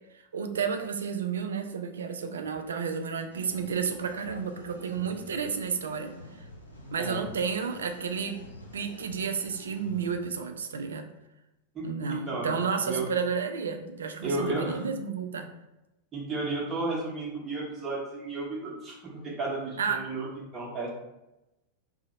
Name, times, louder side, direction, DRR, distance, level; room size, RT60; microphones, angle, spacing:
voice 1, 0.3-6.1 6.9-8.4 8.7-11.0 11.8-15.5 19.8-20.0, right 6 dB, 65° right, 7 dB, 0.3 m, -31 dB
sound 1, 3.3-10.2, left 1 dB, 85° left, 0.7 m, -47 dB
voice 2, 11.7-12.6 12.9-13.0 14.2-14.8 16.1-20.3 20.5-20.9, right 2 dB, 20° right, -3 dB, 0.9 m, -33 dB
2.7 x 2.0 x 3.9 m, 0.94 s
figure-of-eight pair, 90°, 0 cm